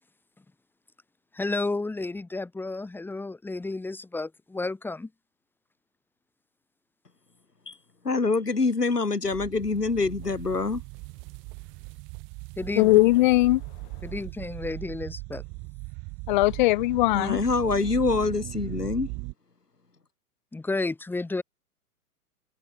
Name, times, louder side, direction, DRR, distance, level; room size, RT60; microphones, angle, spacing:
voice 1, 1.3-5.1 12.6-13.0 14.0-15.4 20.5-21.4, left 3 dB, 5° left, 2.5 m, -32 dB
voice 2, 8.0-10.8 17.1-19.1, left 3 dB, 90° left, 2.0 m, -25 dB
sound 1, 9.2-19.3, right 30 dB, 25° right, 1.3 m, -39 dB
voice 3, 12.8-13.6 16.3-17.4, left 18 dB, 30° left, 0.8 m, -20 dB
figure-of-eight pair, 115°, 46 cm